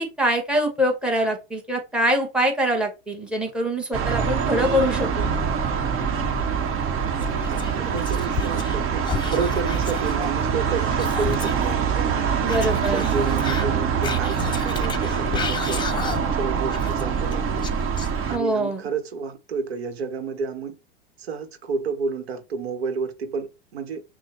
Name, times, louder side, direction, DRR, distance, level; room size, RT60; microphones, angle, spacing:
voice 1, 0.0-5.3 12.4-13.1 18.3-18.8, equal, 5° right, 1.2 m, -24 dB
sound 1, 3.9-18.4, right 6 dB, 40° right, 1.1 m, -24 dB
Whispering, 7.2-8.8 9.0-11.7 12.4-16.4 16.7-18.5, left 6 dB, 15° left, 0.4 m, -33 dB
voice 2, 7.5-12.2 12.7-15.8 16.3-17.7 18.3-20.7 21.2-24.0, right 5 dB, 85° right, 0.9 m, -30 dB
6.0 x 2.1 x 3.1 m
hypercardioid pair, 115°, 31 cm